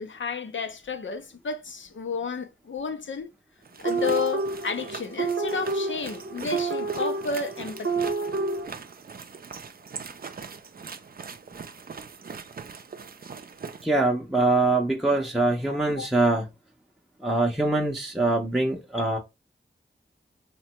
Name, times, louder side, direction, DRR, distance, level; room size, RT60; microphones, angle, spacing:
voice 1, 0.0-3.3 3.8-8.0 16.0-16.1, left 5 dB, 75° left, 0.6 m, -31 dB
sound 1, 3.6-13.8, right 5 dB, 50° right, 0.4 m, -41 dB
sound 2, 3.8-8.7, right 3 dB, 85° right, 0.7 m, -29 dB
voice 2, 13.8-16.5 17.2-19.2, right 2 dB, ahead, 0.6 m, -23 dB
3.3 x 2.2 x 2.8 m
cardioid pair, 45°, 20 cm